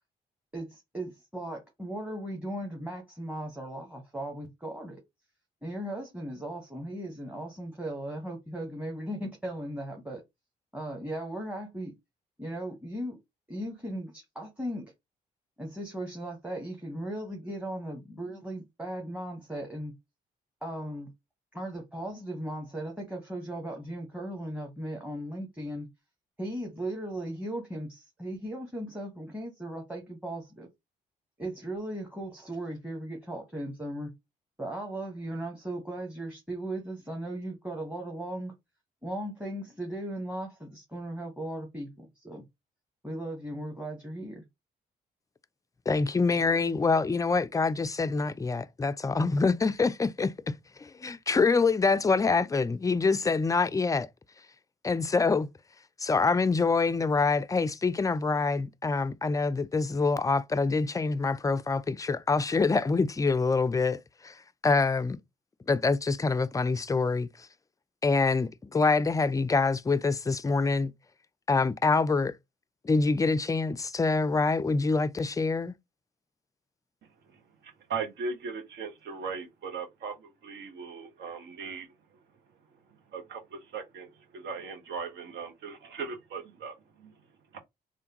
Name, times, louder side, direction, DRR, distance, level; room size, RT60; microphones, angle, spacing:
voice 1, 0.5-5.0 5.6-10.2 10.7-11.9 12.4-13.2 13.5-14.9 15.6-19.9 20.6-21.1 21.5-25.9 26.4-30.7 31.4-34.1 34.6-38.5 39.0-42.4 43.0-44.4, right 1 dB, 5° right, 1.2 m, -37 dB
voice 2, 45.9-54.1 54.8-55.5 56.0-65.2 65.7-67.5 68.0-70.9 71.5-72.3 72.8-75.7, left 4 dB, 15° left, 0.4 m, -26 dB
voice 3, 77.0-82.2 82.7-87.6, right 5 dB, 60° right, 1.0 m, -39 dB
3.3 x 2.2 x 2.9 m
hypercardioid pair, 45°, 20 cm